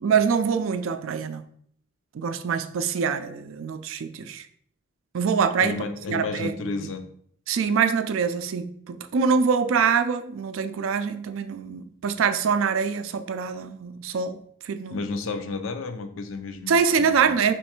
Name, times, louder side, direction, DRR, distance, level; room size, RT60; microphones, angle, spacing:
voice 1, 0.0-1.4 2.1-4.5 5.1-6.5 7.5-14.4 14.6-15.0 16.7-17.5, right 6 dB, 75° right, 0.4 m, -24 dB
voice 2, 5.6-7.0 14.9-17.3, left 4 dB, 75° left, 0.5 m, -32 dB
3.2 x 3.1 x 4.4 m
head